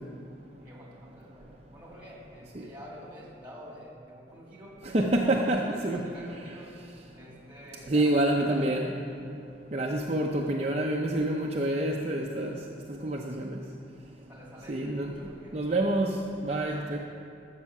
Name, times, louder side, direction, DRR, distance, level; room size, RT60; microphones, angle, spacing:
voice 1, 0.6-1.4 1.7-4.7 5.2-6.7 7.1-8.9 14.3-15.6 16.8-17.0, equal, 10° right, -3 dB, 2.2 m, -47 dB
voice 2, 4.8-6.0 7.9-8.9 9.7-12.6 13.0-13.6 14.7-15.1 15.5-16.2 16.4-17.0, right 1 dB, 35° right, -1 dB, 0.7 m, -27 dB
13.0 x 7.6 x 6.0 m, 2.6 s
head